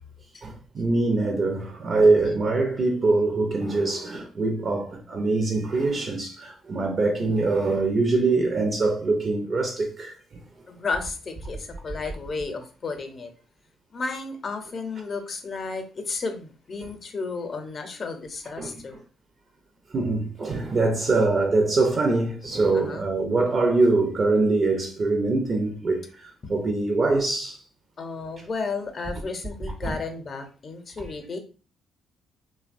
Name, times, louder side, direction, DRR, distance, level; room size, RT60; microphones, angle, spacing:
voice 1, 0.4-10.4 18.6-18.7 19.9-27.6 29.8-29.9, right 3 dB, 45° right, 0.5 m, -23 dB
voice 2, 10.7-13.3 13.9-19.0 21.0-21.1 22.7-23.1 26.4-26.5 28.0-31.4, left 4 dB, 45° left, 0.6 m, -33 dB
2.7 x 2.1 x 2.5 m
supercardioid pair, 65°, 0 cm